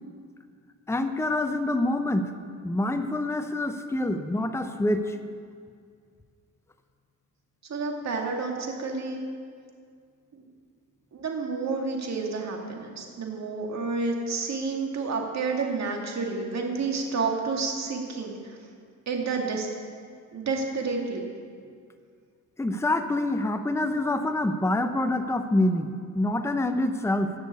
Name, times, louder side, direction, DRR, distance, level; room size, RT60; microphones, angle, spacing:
voice 1, 0.9-2.3 2.6-5.2 22.6-27.3, left 1 dB, 10° left, 8 dB, 0.7 m, -26 dB
voice 2, 7.6-9.3 10.3-10.4 11.1-18.6 19.1-19.7 20.3-21.3, right 4 dB, 50° right, 1 dB, 2.3 m, -30 dB
11.0 x 6.7 x 8.4 m, 2.1 s
cardioid pair, 80°, 34 cm